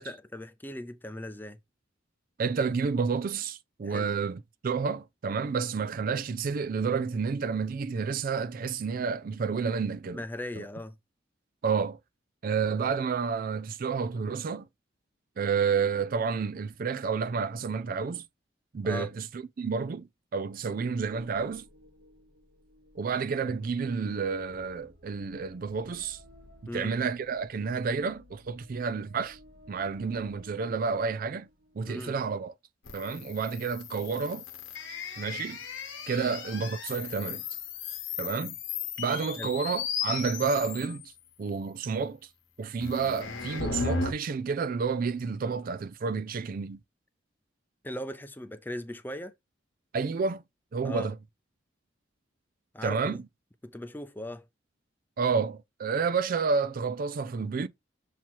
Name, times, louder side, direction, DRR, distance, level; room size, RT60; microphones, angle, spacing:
voice 1, 0.0-1.6 3.8-4.1 10.1-11.0 18.8-19.1 26.7-26.9 31.9-32.1 36.2-36.3 39.4-39.5 47.8-49.3 50.8-51.1 52.7-53.2 53.6-54.5, left 1 dB, 10° left, 0.6 m, -39 dB
voice 2, 2.4-10.2 10.6-10.7 11.6-12.0 12.4-14.7 15.4-18.2 18.7-20.1 20.3-21.6 23.0-26.2 26.7-29.4 29.7-31.5 31.8-32.5 32.9-34.4 35.2-35.6 36.1-37.4 38.2-38.6 39.0-41.1 41.4-42.2 42.6-46.8 49.9-50.4 50.7-51.2 52.8-53.2 55.2-57.7, right 5 dB, 50° right, 0.4 m, -30 dB
sound 1, 21.0-31.8, equal, 65° right, 1.8 m, -56 dB
sound 2, 32.9-41.0 42.8-44.1, left 5 dB, 80° left, 1.1 m, -36 dB
7.3 x 2.9 x 4.5 m
head